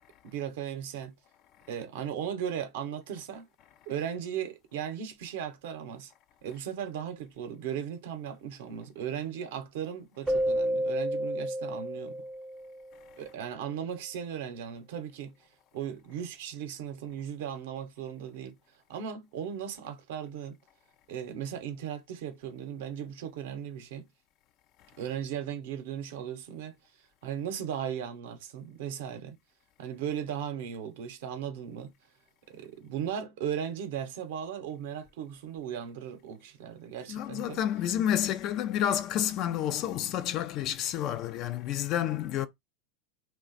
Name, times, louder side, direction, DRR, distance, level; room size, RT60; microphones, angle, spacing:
voice 1, 0.2-1.1 1.7-3.5 3.9-6.1 6.4-12.2 13.2-15.3 15.7-18.5 18.9-20.6 21.1-24.1 25.0-26.7 27.2-29.4 29.8-31.9 32.5-37.6, right 9 dB, 70° right, 0.7 m, -37 dB
Keyboard (musical), 10.3-13.0, equal, 10° right, 0.4 m, -31 dB
voice 2, 37.1-42.5, left 11 dB, 50° left, 0.4 m, -29 dB
2.4 x 2.1 x 3.9 m
hypercardioid pair, 105°, 0 cm